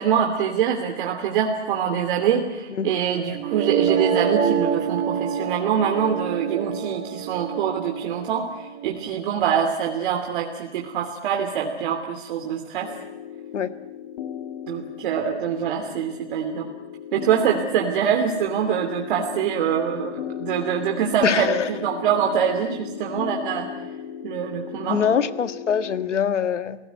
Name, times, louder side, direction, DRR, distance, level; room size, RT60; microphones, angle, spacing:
voice 1, 0.0-12.9 14.7-16.7 17.1-20.1 20.4-23.7 24.2-25.0, right 8 dB, 45° right, 2 dB, 2.9 m, -24 dB
sound 1, 3.3-9.3, right 7 dB, 20° right, 2.4 m, -26 dB
sound 2, 12.8-26.1, left 9 dB, 45° left, 2.6 m, -36 dB
voice 2, 21.2-21.7 24.8-26.8, left 7 dB, 85° left, 12 dB, 1.7 m, -23 dB
29.0 x 18.5 x 9.3 m, 0.99 s
hypercardioid pair, 150°, 35 cm